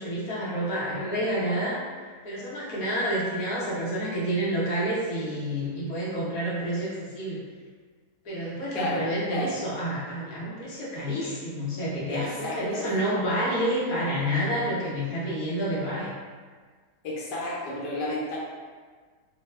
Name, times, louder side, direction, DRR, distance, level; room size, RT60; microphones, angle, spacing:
voice 1, 0.0-1.8 2.2-7.4 8.2-16.1, equal, 60° left, -7 dB, 1.3 m, -29 dB
voice 2, 8.7-9.6 12.1-12.9 17.0-18.4, left 1 dB, 80° left, -5 dB, 1.4 m, -32 dB
3.2 x 2.1 x 3.2 m, 1.5 s
omnidirectional pair, 1.8 m